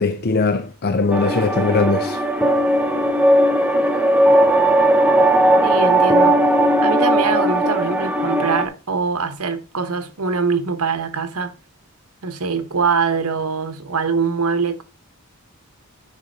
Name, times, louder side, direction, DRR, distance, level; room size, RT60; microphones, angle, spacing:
voice 1, 0.0-2.2, left 4 dB, 45° left, 0.6 m, -20 dB
sound 1, 1.1-8.6, right 1 dB, 5° right, 0.8 m, -17 dB
voice 2, 5.6-6.4 6.8-11.5 12.2-14.8, right 5 dB, 75° right, 1.1 m, -23 dB
9.9 x 5.2 x 4.1 m
head